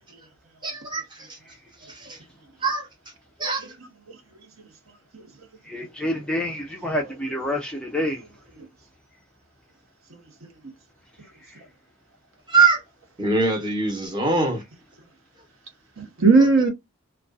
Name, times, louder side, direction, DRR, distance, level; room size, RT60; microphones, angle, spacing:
voice 1, 0.6-1.4 1.8-2.2 2.6-2.9 3.4-3.7 12.5-12.8 13.2-14.6, right 4 dB, 20° right, 0.8 m, -23 dB
voice 2, 5.7-8.2, left 1 dB, 5° left, 0.3 m, -28 dB
voice 3, 10.1-10.5 16.0-16.7, right 4 dB, 65° right, 0.8 m, -20 dB
2.4 x 2.2 x 2.3 m
head